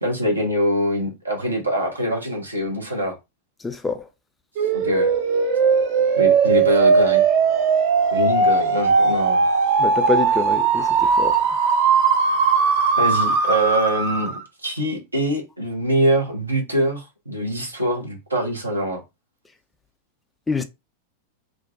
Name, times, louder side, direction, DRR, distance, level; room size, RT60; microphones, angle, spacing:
voice 1, 0.0-3.1 4.7-5.1 6.2-7.2 8.1-9.4 13.0-19.0, equal, 85° right, 0.9 m, -24 dB
voice 2, 3.6-4.0 9.8-10.9 11.2-11.4 20.5-20.6, left 3 dB, 10° left, 0.3 m, -25 dB
sound 1, 4.6-14.4, right 5 dB, 50° right, 0.5 m, -18 dB
2.5 x 2.1 x 2.5 m
figure-of-eight pair, 90°, 0 cm